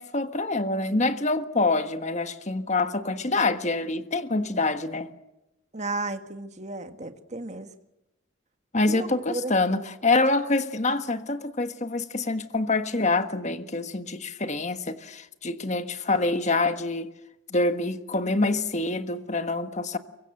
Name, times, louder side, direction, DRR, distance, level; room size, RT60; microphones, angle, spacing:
voice 1, 0.0-5.1 8.7-17.1 17.5-20.0, left 2 dB, 35° left, 1.4 m, -26 dB
voice 2, 5.7-7.7 8.9-9.5, right 2 dB, 35° right, 1.7 m, -33 dB
24.5 x 23.5 x 7.8 m
head